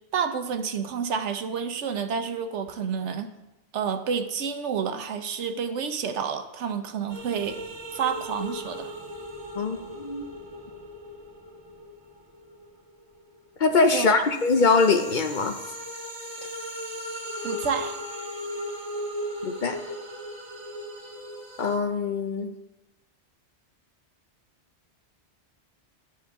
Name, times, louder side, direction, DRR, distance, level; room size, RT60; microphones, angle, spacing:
voice 1, 0.1-3.3 3.7-7.6 7.9-8.9 13.9-14.1 17.4-18.0, right 6 dB, 85° right, 8 dB, 1.1 m, -29 dB
sound 1, 7.1-13.5 13.9-21.8, equal, 25° right, 1.3 m, -37 dB
voice 2, 9.6-10.3 13.6-15.6 19.4-19.8 21.6-22.5, left 4 dB, 50° left, 7 dB, 0.7 m, -23 dB
13.0 x 7.5 x 3.6 m, 0.98 s
omnidirectional pair, 1.2 m